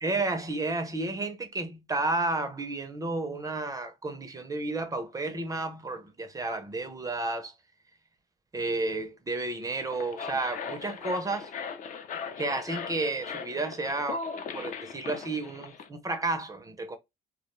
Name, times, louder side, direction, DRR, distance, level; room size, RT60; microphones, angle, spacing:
voice 1, 0.0-7.5 8.5-11.5 12.4-14.2 14.5-17.0, right 2 dB, 20° right, 0.5 m, -32 dB
sound 1, 9.7-15.9, left 5 dB, 50° left, 0.5 m, -39 dB
2.3 x 2.1 x 2.9 m
cardioid pair, 110°, 17 cm